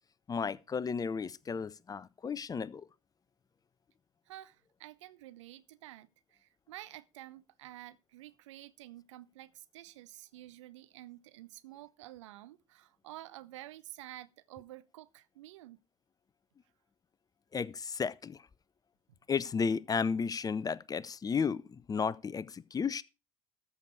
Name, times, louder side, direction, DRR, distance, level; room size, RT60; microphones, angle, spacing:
voice 1, 0.3-2.8 17.5-18.4 19.3-23.0, left 6 dB, 20° left, 0.6 m, -33 dB
voice 2, 4.3-15.8, right 15 dB, 70° right, 0.7 m, -50 dB
14.0 x 6.9 x 4.8 m
figure-of-eight pair, 65°, 16 cm